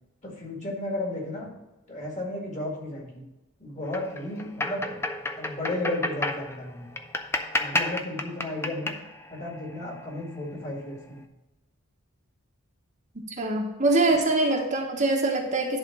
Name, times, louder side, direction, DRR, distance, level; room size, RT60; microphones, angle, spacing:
voice 1, 0.2-1.5 1.9-3.2 3.6-5.0 5.4-6.9 7.6-8.9 9.3-11.2, left 1 dB, 35° left, -1 dB, 2.1 m, -33 dB
sound 1, 3.8-10.6, left 2 dB, 10° left, 0.5 m, -32 dB
voice 2, 13.4-15.8, right 2 dB, 35° right, 0 dB, 1.1 m, -23 dB
11.0 x 3.7 x 6.0 m, 1.0 s
head